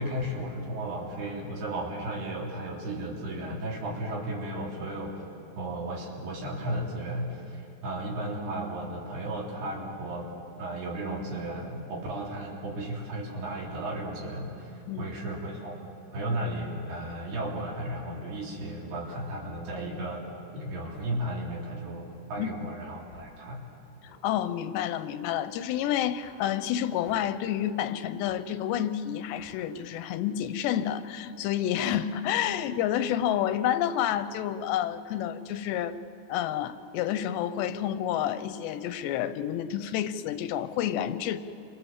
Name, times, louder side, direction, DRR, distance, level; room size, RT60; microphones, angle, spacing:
voice 1, 0.0-5.1 5.6-10.3 10.6-20.2 20.5-23.6, right 1 dB, 70° right, -2 dB, 5.5 m, -34 dB
sound 1, 19.0-19.2 20.9-21.1 23.0-23.4 24.0-24.2 26.1-26.4 27.0-27.3 28.2-28.4 29.3-29.6, left 3 dB, 50° left, 6.3 m, -54 dB
voice 2, 24.2-36.0 36.3-41.4, left 10 dB, 85° left, 12 dB, 3.0 m, -29 dB
29.0 x 24.5 x 7.3 m, 2.7 s
omnidirectional pair, 4.9 m